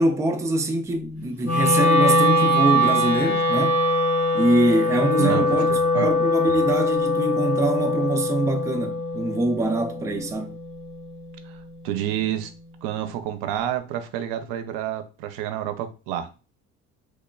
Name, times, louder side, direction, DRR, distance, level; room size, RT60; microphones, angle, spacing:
voice 1, 0.0-3.8 4.3-5.7 5.9-10.5, right 1 dB, 10° right, 0.4 m, -23 dB
Wind instrument woodwind instrument, 1.4-11.6, left 1 dB, 50° left, 1.3 m, -22 dB
voice 2, 5.2-6.1 11.4-12.5 12.8-16.3, right 11 dB, 75° right, 0.5 m, -29 dB
3.2 x 2.1 x 2.2 m
supercardioid pair, 75°, 35 cm